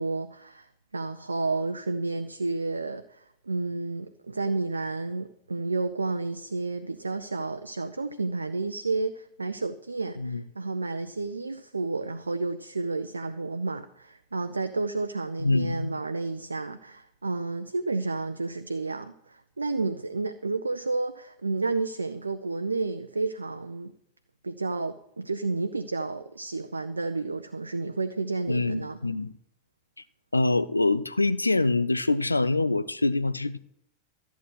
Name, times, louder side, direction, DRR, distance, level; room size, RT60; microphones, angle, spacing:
voice 1, 0.0-23.9 24.4-29.0, right 3 dB, 80° right, 0.5 m, -31 dB
voice 2, 15.4-15.9 28.5-29.3 30.3-33.6, left 2 dB, 80° left, 0.5 m, -25 dB
13.5 x 8.2 x 6.1 m
figure-of-eight pair, 90°, 0 cm